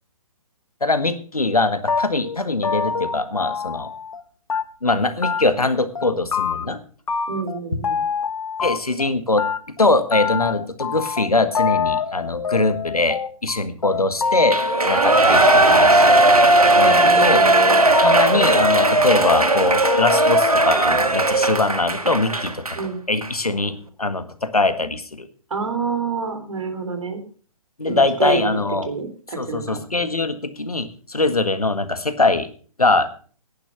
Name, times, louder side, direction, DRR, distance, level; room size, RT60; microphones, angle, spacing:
voice 1, 0.8-3.9 4.8-6.8 8.6-9.4 9.8-14.6 14.8-16.2 16.8-17.4 18.0-22.6 23.1-25.3 27.8-28.9 29.4-32.5 32.8-33.1, left 2 dB, 85° left, 11 dB, 1.7 m, -22 dB
sound 1, 1.9-4.2 4.5-5.0 5.2-5.7 6.0-6.8 7.1-9.1 9.4-20.4, left 5 dB, 65° left, 1.2 m, -26 dB
voice 2, 7.3-8.0 16.8-17.8 22.7-23.0 25.5-27.2 27.9-29.8, right 5 dB, 60° right, 7 dB, 3.3 m, -27 dB
Shout / Cheering, 14.5-22.8 23.2-23.3, right 2 dB, 85° right, 1.7 m, -17 dB
11.0 x 10.5 x 6.0 m, 0.42 s
figure-of-eight pair, 135°, 19 cm